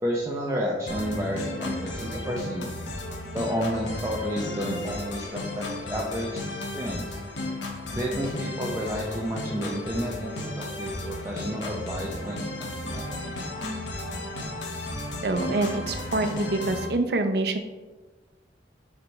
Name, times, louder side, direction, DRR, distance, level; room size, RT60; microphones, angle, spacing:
voice 1, 0.0-2.7 3.3-7.2 7.9-13.4, equal, 15° right, -3 dB, 0.6 m, -31 dB
sound 1, 0.9-16.9, left 2 dB, 80° left, 1.2 m, -34 dB
voice 2, 15.2-17.6, right 2 dB, 60° right, 6 dB, 0.6 m, -26 dB
6.7 x 3.4 x 4.4 m, 1.2 s
head